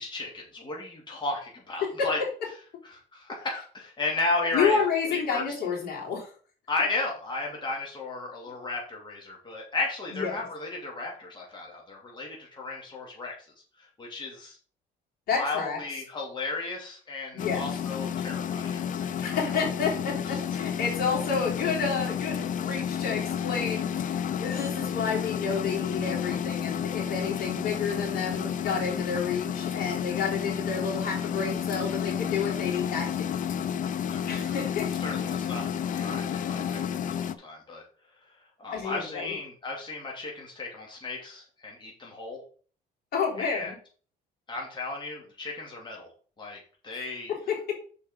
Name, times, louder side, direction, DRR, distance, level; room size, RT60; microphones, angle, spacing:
voice 1, 0.0-2.2 2.8-4.8 5.1-5.4 6.7-13.3 13.8-14.6 15.4-19.4 34.1-34.6 35.0-37.8 38.6-42.4 43.4-43.7 44.5-46.1 46.4-47.3, left 3 dB, 25° left, -2 dB, 2.6 m, -34 dB
voice 2, 4.5-6.3 10.1-10.4 15.3-15.8 17.3-17.7 19.2-33.3 34.3-34.9 38.7-39.4 43.1-43.8 46.9-47.0 47.3-47.7, left 5 dB, 65° left, -2 dB, 3.5 m, -30 dB
sound 1, 17.4-37.3, left 8 dB, 50° left, 0.6 m, -31 dB
6.8 x 5.3 x 5.2 m, 0.42 s
cardioid pair, 110°, 17 cm